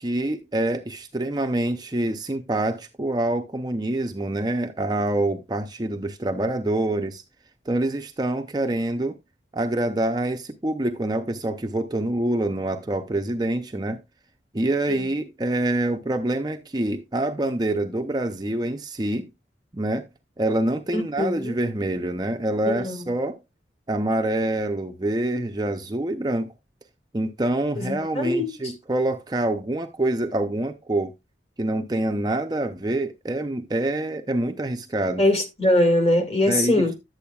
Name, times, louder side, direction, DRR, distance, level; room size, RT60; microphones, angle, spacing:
voice 1, 0.0-7.2 7.7-9.2 9.5-14.0 14.5-19.3 19.7-20.1 20.4-23.4 23.9-26.5 27.1-31.1 31.6-35.2 36.5-37.0, right 1 dB, 20° right, 0.6 m, -26 dB
voice 2, 20.9-21.6 22.7-23.0 27.8-28.5 35.2-36.9, left 1 dB, 30° left, 1.9 m, -22 dB
11.5 x 8.5 x 2.3 m
head